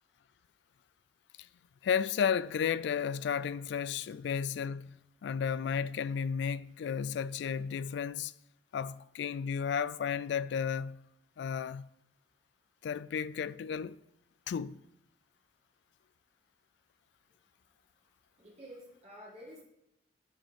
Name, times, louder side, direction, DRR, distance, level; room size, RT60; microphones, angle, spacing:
voice 1, 1.8-8.3 8.7-11.0 11.4-11.9 12.8-14.0 14.5-14.8, left 7 dB, 70° left, 0.3 m, -33 dB
voice 2, 18.4-19.6, equal, 40° right, 1.9 m, -50 dB
10.5 x 6.1 x 3.5 m
head